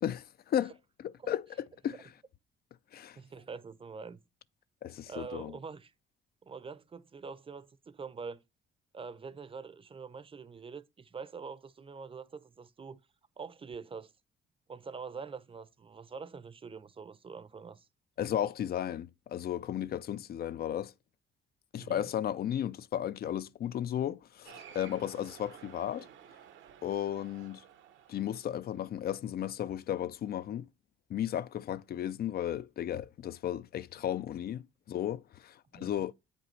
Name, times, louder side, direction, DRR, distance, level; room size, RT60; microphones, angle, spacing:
voice 1, 0.0-0.7 1.0-2.0 2.9-3.2 4.8-5.5 18.2-20.9 21.7-26.1 26.8-27.6 28.1-30.7 31.1-36.1, left 10 dB, 50° left, 0.4 m, -34 dB
voice 2, 3.2-4.2 5.1-5.9 6.4-8.4 8.9-13.0 13.4-14.1 14.7-17.9 21.8-22.1 35.7-35.9, right 5 dB, 25° right, 0.6 m, -45 dB
Cheering, 24.4-29.2, right 9 dB, 75° right, 0.8 m, -54 dB
8.6 x 5.2 x 3.1 m
cardioid pair, 90°, 20 cm